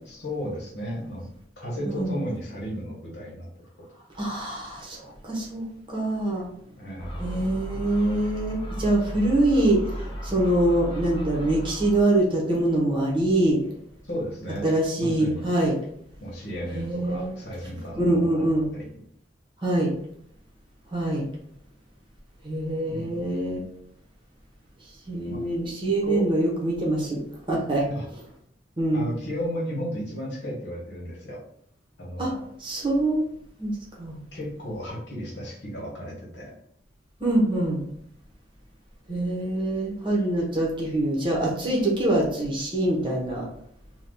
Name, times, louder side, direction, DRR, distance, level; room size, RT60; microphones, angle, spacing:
voice 1, 0.1-1.3 1.6-3.5 6.8-7.5 14.0-14.7 15.0-15.5 16.2-18.5 18.7-19.0 22.9-23.3 25.3-25.4 26.0-26.3 27.9-28.0 28.9-31.4 32.0-32.4 34.3-36.5, equal, 70° left, -4 dB, 1.2 m, -34 dB
voice 2, 1.8-2.2 4.2-6.5 7.2-13.6 14.6-15.7 16.7-17.3 18.0-18.7 19.6-19.9 20.9-21.2 22.4-23.6 25.1-27.9 28.8-29.1 32.2-32.3 32.6-33.2 33.6-34.2 37.2-37.8 39.1-43.4, right 1 dB, 30° right, -3 dB, 0.9 m, -24 dB
Gull seagull, 7.0-12.0, equal, 30° left, 0.8 m, -34 dB
2.8 x 2.3 x 3.6 m, 0.70 s
head